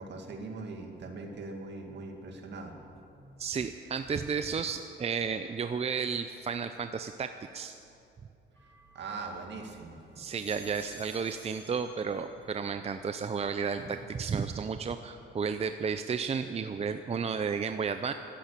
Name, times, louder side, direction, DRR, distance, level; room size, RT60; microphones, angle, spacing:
voice 1, 0.0-2.9 3.1-3.4 8.9-10.3 13.8-13.9, right 3 dB, 60° right, 3 dB, 2.3 m, -41 dB
voice 2, 3.4-7.8 10.2-18.1, right 6 dB, 30° right, 9 dB, 0.6 m, -33 dB
sound 1, 8.6-9.7 10.1-12.6 12.9-13.5, left 1 dB, 10° left, 4.4 m, -54 dB
13.5 x 10.0 x 9.0 m, 2.6 s
cardioid pair, 90°, 20 cm